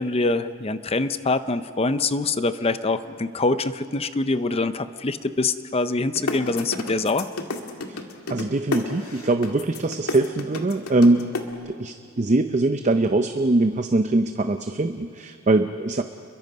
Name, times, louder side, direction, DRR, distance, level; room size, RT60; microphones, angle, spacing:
voice 1, 0.0-7.3, left 3 dB, 25° left, 12 dB, 0.6 m, -24 dB
sound 1, 6.1-11.4, left 2 dB, 75° left, 2.1 m, -29 dB
voice 2, 8.3-16.0, right 2 dB, 30° right, 8 dB, 0.6 m, -22 dB
29.5 x 22.5 x 5.5 m, 2.2 s
head